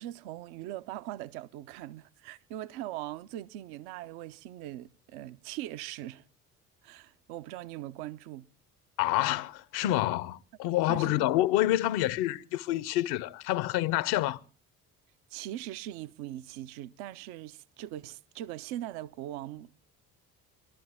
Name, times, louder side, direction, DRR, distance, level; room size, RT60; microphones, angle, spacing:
voice 1, 0.0-6.2 6.8-8.5 10.9-11.3 15.3-19.8, right 13 dB, 60° right, 0.7 m, -41 dB
voice 2, 9.0-14.4, left 15 dB, 60° left, 0.8 m, -28 dB
22.5 x 12.0 x 3.5 m
figure-of-eight pair, 55°, 44 cm